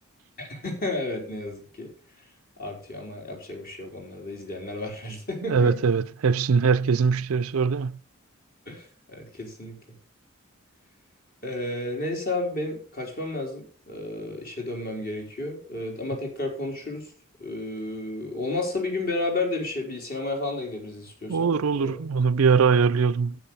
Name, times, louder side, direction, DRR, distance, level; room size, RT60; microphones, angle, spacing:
voice 1, 0.4-1.9 2.6-5.8 8.7-9.8 11.4-17.1 17.4-21.9, left 2 dB, 45° left, 4.2 m, -32 dB
voice 2, 5.4-8.0 21.3-23.4, right 5 dB, 85° right, 0.5 m, -22 dB
10.0 x 9.0 x 5.6 m
head